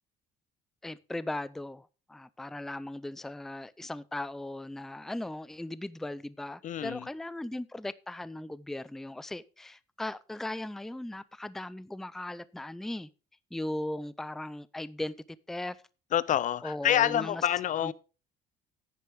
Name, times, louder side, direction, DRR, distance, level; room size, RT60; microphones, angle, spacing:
voice 1, 0.8-13.1 13.5-15.1 15.5-15.8 16.6-17.5 17.8-17.9, left 1 dB, ahead, 0.4 m, -38 dB
voice 2, 6.6-7.1 16.1-17.9, left 11 dB, 50° left, 0.6 m, -27 dB
10.5 x 9.5 x 3.5 m
cardioid pair, 110°, 17 cm